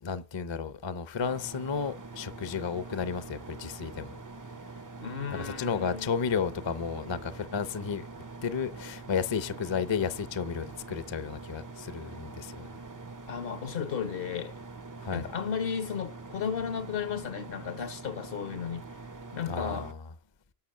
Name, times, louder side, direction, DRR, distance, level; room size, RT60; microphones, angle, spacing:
voice 1, 0.0-4.2 5.3-8.1 8.4-12.7 15.0-15.3 19.5-20.0, left 6 dB, 30° left, 0.6 m, -33 dB
sound 1, 1.2-19.9, right 3 dB, 25° right, 0.4 m, -44 dB
voice 2, 5.0-6.1 13.3-14.6 15.1-18.8 19.3-19.9, left 7 dB, 60° left, 1.0 m, -34 dB
11.5 x 6.6 x 6.5 m
omnidirectional pair, 1.1 m